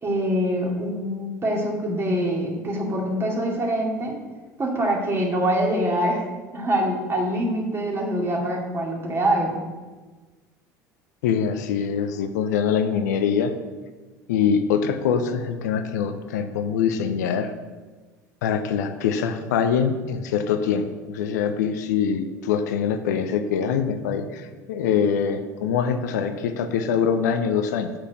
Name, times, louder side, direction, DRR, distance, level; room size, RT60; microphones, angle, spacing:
voice 1, 0.0-4.1 4.6-6.3 6.5-9.6, right 1 dB, 25° right, -2 dB, 2.5 m, -24 dB
voice 2, 11.2-13.5 14.3-17.5 18.4-27.9, left 7 dB, 70° left, 9 dB, 0.6 m, -24 dB
6.5 x 5.9 x 6.3 m, 1.3 s
figure-of-eight pair, 70°, 9 cm